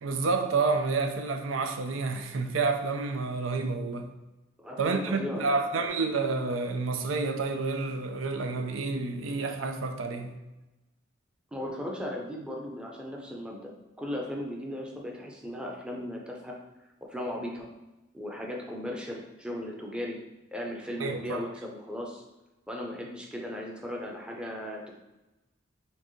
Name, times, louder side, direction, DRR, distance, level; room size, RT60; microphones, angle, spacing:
voice 1, 0.0-4.1 4.8-10.4 21.0-21.4, right 4 dB, 85° right, 5 dB, 0.5 m, -29 dB
voice 2, 4.6-5.9 11.5-13.7 14.0-16.5 17.0-17.7 18.1-20.2 20.5-22.2 22.7-25.0, left 1 dB, 5° right, -1 dB, 0.6 m, -37 dB
4.4 x 3.4 x 3.1 m, 1.0 s
head